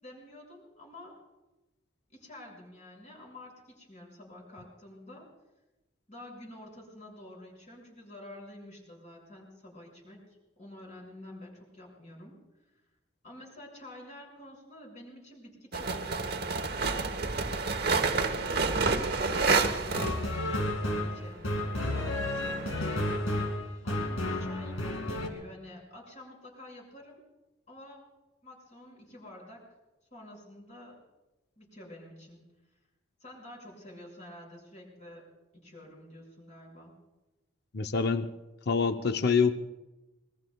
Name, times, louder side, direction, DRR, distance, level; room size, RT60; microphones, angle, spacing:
voice 1, 0.0-1.2 2.1-5.3 6.1-10.2 10.6-12.4 13.2-16.4 16.7-17.2 18.1-23.5 23.8-24.8 25.1-27.2 27.7-28.0 28.4-29.6 30.1-31.0 31.6-32.4 33.2-35.3 35.5-36.9, left 1 dB, 35° left, -2 dB, 5.7 m, -49 dB
sound 1, 15.7-20.6 21.7-23.2, right 4 dB, 50° right, 1.1 m, -29 dB
sound 2, 19.9-25.3, left 1 dB, 85° left, 2.3 m, -32 dB
voice 2, 37.7-38.3 38.7-39.5, left 5 dB, 50° left, 9 dB, 0.6 m, -26 dB
25.5 x 21.5 x 2.3 m, 1.0 s
head